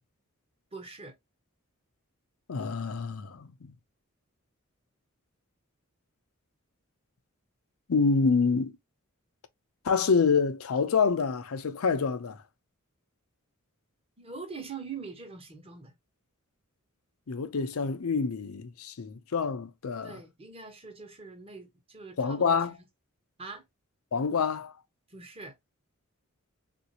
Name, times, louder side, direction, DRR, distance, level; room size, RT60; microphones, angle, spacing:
voice 1, 0.7-1.2 14.2-15.9 20.0-22.8 23.4-23.6 25.1-25.6, right 4 dB, 25° right, 0.9 m, -43 dB
voice 2, 2.5-3.7 7.9-8.7 9.8-12.4 17.3-20.2 22.2-22.7 24.1-24.7, left 5 dB, 75° left, 0.5 m, -27 dB
3.6 x 2.5 x 2.8 m
head